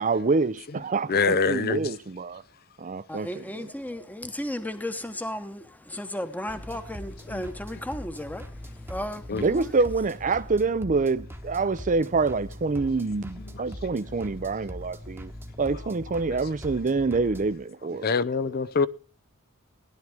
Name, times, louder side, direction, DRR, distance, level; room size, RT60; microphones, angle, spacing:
voice 1, 0.0-2.4 2.8-3.7 9.3-15.3 15.6-18.1, right 4 dB, 35° right, 0.6 m, -26 dB
voice 2, 1.1-1.9 7.3-7.5 9.3-9.5 18.0-18.9, left 5 dB, 45° left, 0.6 m, -24 dB
voice 3, 3.1-8.5 8.9-9.7, left 1 dB, 10° left, 1.1 m, -34 dB
sound 1, 6.5-17.5, equal, 10° right, 1.1 m, -41 dB
17.0 x 11.0 x 3.5 m
head